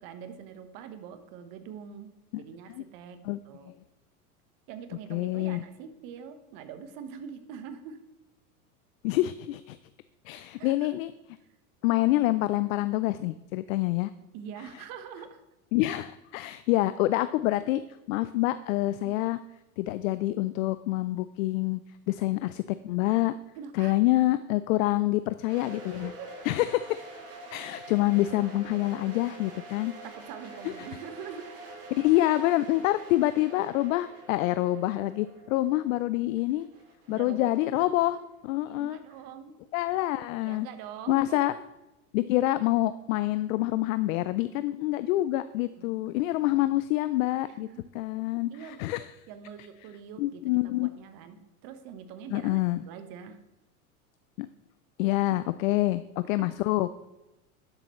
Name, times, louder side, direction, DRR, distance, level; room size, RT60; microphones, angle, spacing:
voice 1, 0.0-3.7 4.7-8.0 10.5-11.0 14.3-15.4 19.0-19.2 23.5-24.0 26.0-26.5 30.0-31.6 37.1-37.9 38.7-39.6 40.4-41.6 45.8-46.2 47.5-47.9 48.5-48.8 49.3-53.4 56.4-56.5, right 7 dB, 50° right, 9 dB, 1.3 m, -44 dB
voice 2, 5.1-5.6 9.0-9.8 10.3-11.1 11.8-14.1 15.7-17.8 18.1-19.4 19.8-21.8 22.1-23.3 23.8-26.1 26.5-27.0 27.5-29.9 32.0-36.7 37.1-38.2 38.4-39.0 39.7-40.7 41.1-41.5 42.1-47.7 47.9-49.0 50.2-50.9 52.3-52.8 54.4-54.5 55.0-56.9, left 16 dB, 65° left, 14 dB, 0.5 m, -26 dB
sound 1, 25.5-38.3, right 2 dB, 30° right, 3.2 m, -47 dB
11.0 x 6.7 x 3.1 m, 0.99 s
hypercardioid pair, 95°, 44 cm